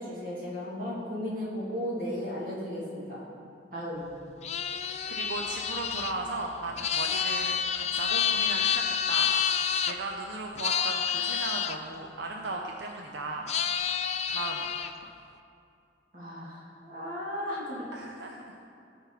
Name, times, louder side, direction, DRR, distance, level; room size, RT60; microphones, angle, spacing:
voice 1, 0.0-3.2 3.7-4.1 16.1-17.9, equal, 50° right, -7 dB, 2.8 m, -35 dB
sound 1, 4.4-9.9 10.6-11.8 13.5-14.9, left 8 dB, 35° left, 0.3 m, -29 dB
voice 2, 5.1-13.5 14.3-14.6 17.9-18.6, right 2 dB, 85° right, 1 dB, 0.7 m, -37 dB
17.0 x 5.6 x 4.1 m, 2.5 s
head